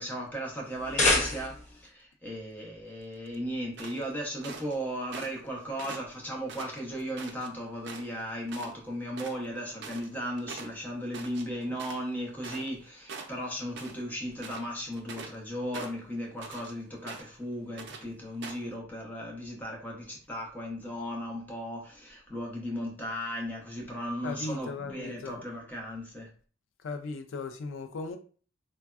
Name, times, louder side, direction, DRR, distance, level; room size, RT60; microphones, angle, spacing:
voice 1, 0.0-26.3, equal, 10° left, 0.8 m, -36 dB
sound 1, 0.7-1.8, left 2 dB, 40° left, 0.8 m, -27 dB
sound 2, 3.8-4.8 5.1-5.5 5.8-7.5 7.8-8.2 8.5-8.7 9.0-12.8 13.1-14.0 14.3-15.4 15.7-16.7 17.1-17.4 17.8-18.0 18.4-18.7, right 4 dB, 65° right, 0.5 m, -43 dB
voice 2, 24.2-25.4 26.8-28.2, left 3 dB, 85° left, 0.3 m, -37 dB
3.3 x 2.1 x 2.3 m
head